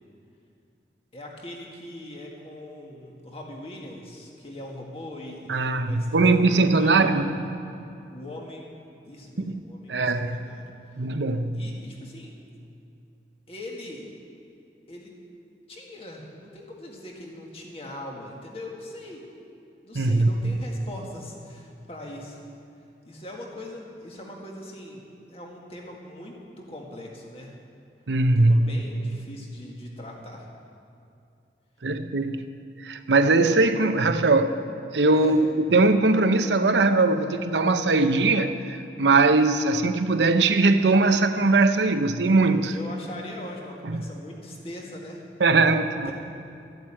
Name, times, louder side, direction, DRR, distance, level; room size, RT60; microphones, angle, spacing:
voice 1, 1.1-7.2 8.1-11.0 11.5-12.3 13.5-14.1 14.9-15.1 15.7-19.2 19.8-22.4 23.1-27.6 28.4-30.5 35.1-35.4 42.6-45.2 46.1-46.2, left 1 dB, 35° left, 1.8 m, -41 dB
voice 2, 5.5-7.3 9.5-9.6 9.9-10.4 11.0-11.6 19.9-20.6 28.1-28.8 31.8-32.5 32.8-34.5 34.9-42.7 43.9-44.0 45.4-46.1, right 3 dB, 85° right, 0.8 m, -21 dB
13.0 x 8.0 x 8.8 m
head